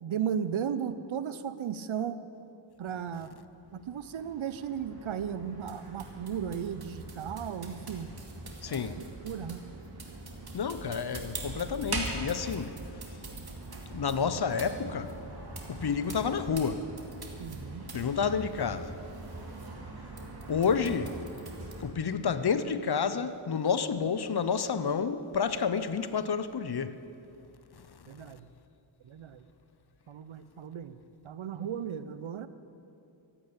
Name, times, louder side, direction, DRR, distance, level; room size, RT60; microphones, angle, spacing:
voice 1, 0.0-2.2 2.8-3.3 3.7-8.1 8.7-9.6 17.4-17.9 28.1-28.5 29.0-29.4 30.1-31.0 31.2-32.5, right 8 dB, 75° right, 0.7 m, -35 dB
sound 1, 3.5-21.9, right 2 dB, 50° right, 2.4 m, -42 dB
voice 2, 8.6-9.0 10.5-12.8 13.9-15.2 15.7-16.9 17.9-18.9 20.5-21.2 21.8-27.0 27.8-28.2, left 6 dB, 55° left, 0.8 m, -30 dB
14.0 x 8.7 x 8.7 m
cardioid pair, 45°, 48 cm